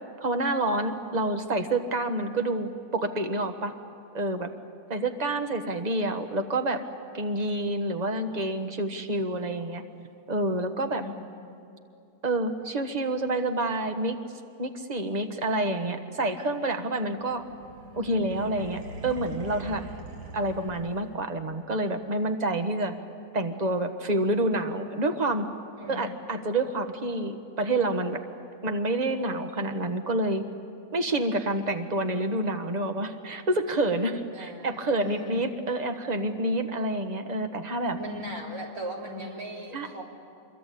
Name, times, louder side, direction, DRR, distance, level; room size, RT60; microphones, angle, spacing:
voice 1, 0.2-3.7 4.1-4.5 4.9-6.8 7.1-9.8 10.3-11.0 12.2-14.2 14.6-17.4 17.9-19.9 20.3-23.0 23.3-25.5 25.9-28.2 28.6-30.4 30.9-38.0 39.7-40.0, right 2 dB, 25° right, 6 dB, 1.4 m, -28 dB
voice 2, 10.8-11.2 25.8-26.2 34.3-35.4 38.0-40.0, equal, 65° right, -1 dB, 3.9 m, -38 dB
sound 1, 17.2-21.4, right 2 dB, 80° right, 2.2 m, -42 dB
25.5 x 23.0 x 8.6 m, 2.5 s
omnidirectional pair, 1.7 m